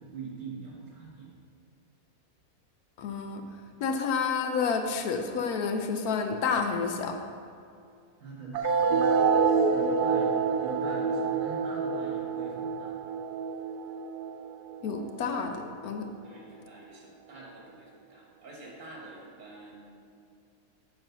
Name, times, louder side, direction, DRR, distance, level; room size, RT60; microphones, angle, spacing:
voice 1, 0.0-1.3 8.2-13.0 16.2-20.0, right 3 dB, 60° right, -2 dB, 1.8 m, -44 dB
voice 2, 3.0-3.4 3.8-7.2 14.8-16.1, left 5 dB, 85° left, 5 dB, 1.2 m, -29 dB
sound 1, 8.5-15.5, right 5 dB, 90° right, 1.2 m, -27 dB
7.7 x 4.6 x 5.8 m, 2.4 s
omnidirectional pair, 1.6 m